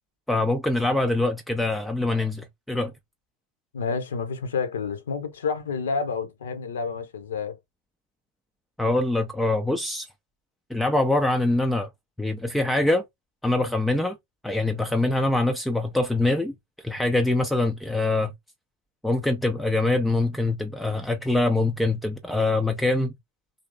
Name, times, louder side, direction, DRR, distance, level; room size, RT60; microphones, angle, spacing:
voice 1, 0.3-2.9 8.8-10.1 10.7-11.9 12.2-13.0 13.4-14.2 14.4-16.5 16.8-18.3 19.0-23.1, left 2 dB, 5° left, 0.4 m, -24 dB
voice 2, 3.7-7.6, left 5 dB, 65° left, 0.8 m, -29 dB
2.8 x 2.7 x 3.6 m
figure-of-eight pair, 90°, 0 cm